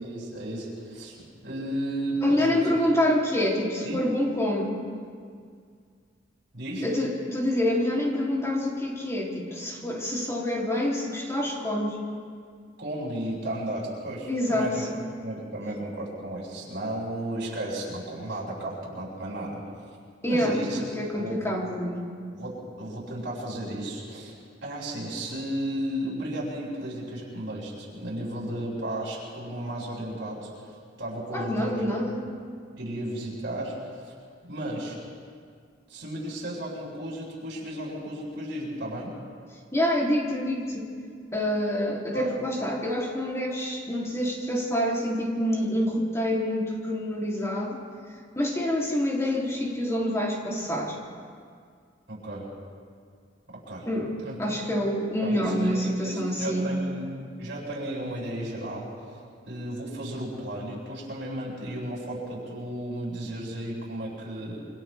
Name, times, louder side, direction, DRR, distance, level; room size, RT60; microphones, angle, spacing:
voice 1, 0.0-2.6 3.8-4.0 6.5-6.9 12.8-14.9 15.2-19.6 20.2-20.8 21.1-21.5 22.3-31.9 32.8-33.8 34.4-35.0 35.9-39.2 42.1-42.3 52.1-52.5 53.5-53.9 54.2-54.4 55.2-57.1 57.4-59.2 59.5-64.6, right 1 dB, 65° right, -4 dB, 7.7 m, -34 dB
voice 2, 2.2-4.8 6.8-12.0 14.3-14.9 20.2-20.6 21.0-22.0 31.3-32.2 39.7-40.9 41.3-47.8 48.3-51.0 53.9-56.7, left 1 dB, 15° left, -3 dB, 3.3 m, -27 dB
28.0 x 26.5 x 3.6 m, 2.1 s
head